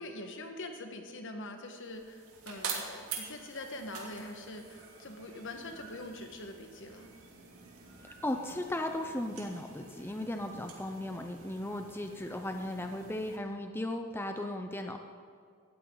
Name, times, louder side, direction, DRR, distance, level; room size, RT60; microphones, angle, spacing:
voice 1, 0.0-7.1, left 1 dB, 60° left, 5 dB, 1.7 m, -44 dB
sound 1, 1.7-13.4, right 5 dB, 85° right, 2.7 m, -46 dB
voice 2, 8.0-15.0, left 1 dB, 10° left, 5 dB, 0.7 m, -36 dB
18.0 x 14.0 x 4.0 m, 2.2 s
head